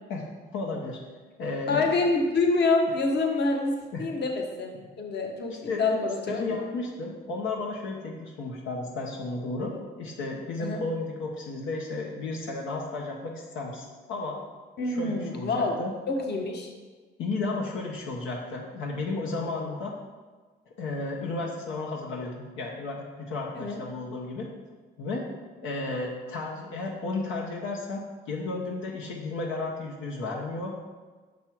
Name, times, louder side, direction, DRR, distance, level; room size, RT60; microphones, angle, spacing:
voice 1, 0.1-1.0 1.4-1.9 3.9-4.1 5.7-5.8 6.3-14.4 14.8-15.9 17.2-19.9 20.8-24.5 25.0-25.3 25.6-30.7, left 3 dB, 85° left, -1 dB, 1.0 m, -33 dB
voice 2, 1.7-6.4 10.6-10.8 14.8-15.8 16.1-16.7 23.5-23.8, left 3 dB, 55° left, 2 dB, 1.1 m, -26 dB
6.2 x 5.3 x 4.5 m, 1.4 s
cardioid pair, 90°, 20 cm